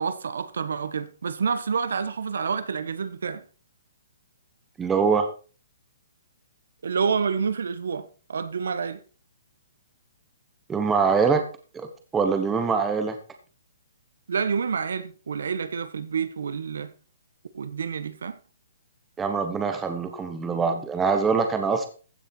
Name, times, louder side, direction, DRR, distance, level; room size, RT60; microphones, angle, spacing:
voice 1, 0.0-3.4 6.8-9.0 14.3-16.9 17.5-18.4, right 6 dB, 70° right, 1.3 m, -28 dB
voice 2, 4.8-5.3 10.7-11.4 11.7-13.1 19.2-21.9, right 5 dB, 5° right, 1.0 m, -24 dB
15.0 x 6.9 x 4.4 m
hypercardioid pair, 175°, 0 cm